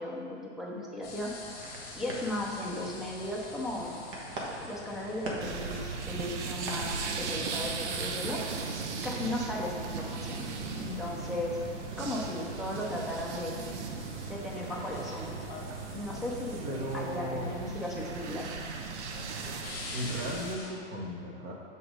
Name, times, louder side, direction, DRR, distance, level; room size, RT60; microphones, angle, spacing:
voice 1, 0.0-1.3 1.7-4.0 4.6-8.4 9.0-10.4 10.7-11.6 12.0-13.5 14.3-15.4 15.9-16.7 16.9-18.5, left 1 dB, ahead, -4 dB, 0.5 m, -36 dB
sound 1, 1.0-20.7, left 2 dB, 25° left, 1.3 m, -46 dB
sound 2, 1.4-13.1, right 1 dB, 50° right, 1.4 m, -45 dB
sound 3, 5.4-20.5, right 5 dB, 70° right, 0.7 m, -38 dB
voice 2, 16.6-17.5 19.9-21.5, equal, 25° right, -1 dB, 1.0 m, -36 dB
5.9 x 4.0 x 5.0 m, 2.3 s
hypercardioid pair, 135°, 36 cm